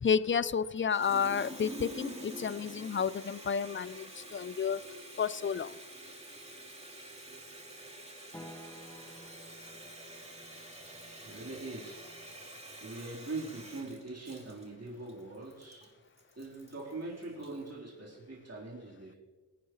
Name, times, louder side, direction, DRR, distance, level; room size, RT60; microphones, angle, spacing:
voice 1, 0.0-4.8 5.2-5.7, left 6 dB, 30° left, 17 dB, 0.4 m, -31 dB
Water tap faucet, 0.8-17.7, right 1 dB, 15° right, 2.9 m, -47 dB
sound 1, 8.3-12.4, equal, 5° left, 1.0 m, -54 dB
voice 2, 11.2-12.0 12.8-15.9 16.4-19.2, right 2 dB, 40° right, -6 dB, 4.0 m, -42 dB
21.5 x 9.2 x 3.2 m, 1.3 s
cardioid pair, 55°, 39 cm